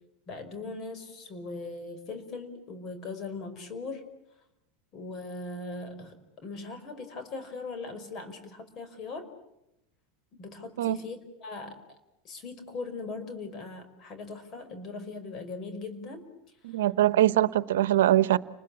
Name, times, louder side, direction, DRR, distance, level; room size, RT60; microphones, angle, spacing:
voice 1, 0.3-4.1 4.9-9.3 10.3-11.8 12.2-16.2, left 3 dB, 45° left, 5.3 m, -40 dB
voice 2, 16.6-18.4, right 13 dB, 80° right, 0.9 m, -22 dB
30.0 x 20.5 x 8.6 m
hypercardioid pair, 100°, 0 cm